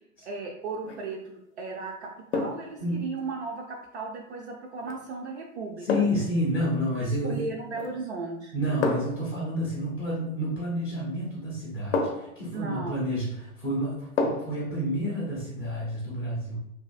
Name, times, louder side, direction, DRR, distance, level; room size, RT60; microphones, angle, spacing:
voice 1, 0.2-5.9 7.2-8.5 12.5-13.0, right 4 dB, 55° right, 0 dB, 0.4 m, -36 dB
sound 1, 0.7-1.1 2.3-2.7 4.8-5.0 5.9-6.3 7.7-8.1 8.8-9.3 10.9-11.0 11.9-12.4 14.2-14.6 15.0-15.1, left 3 dB, 55° left, 0.6 m, -29 dB
voice 2, 5.8-7.4 8.5-16.6, equal, 10° left, -9 dB, 0.4 m, -30 dB
2.6 x 2.4 x 2.3 m, 0.79 s
figure-of-eight pair, 100°, 42 cm